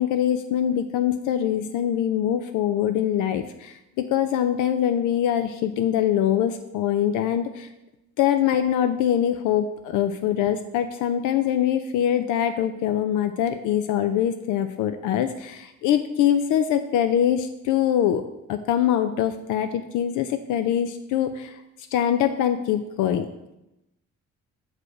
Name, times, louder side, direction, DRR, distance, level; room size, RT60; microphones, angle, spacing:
voice 1, 0.0-7.7 8.2-18.2 18.5-21.6 21.9-23.3, left 10 dB, 90° left, 8 dB, 0.5 m, -23 dB
6.4 x 4.9 x 4.8 m, 0.91 s
cardioid pair, 90°, 30 cm